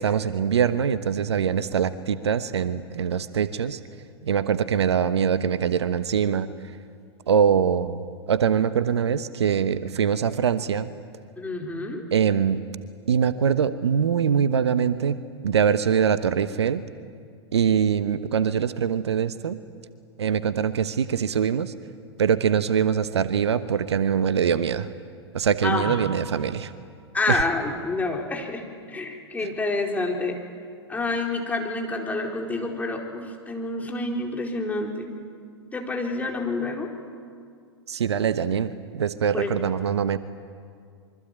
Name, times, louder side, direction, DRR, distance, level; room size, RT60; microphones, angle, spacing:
voice 1, 0.0-3.8 4.2-6.5 7.3-10.9 12.1-12.6 13.1-16.8 17.5-19.6 20.2-21.7 22.2-24.9 25.3-26.7 27.3-27.4 37.9-40.2, right 7 dB, 75° right, 13 dB, 1.2 m, -23 dB
voice 2, 11.4-12.1 25.6-26.0 27.1-30.4 30.9-35.1 35.7-36.9 39.3-39.5, left 3 dB, 10° left, 1 dB, 4.2 m, -28 dB
26.0 x 24.0 x 9.1 m, 2.2 s
figure-of-eight pair, 100°, 14 cm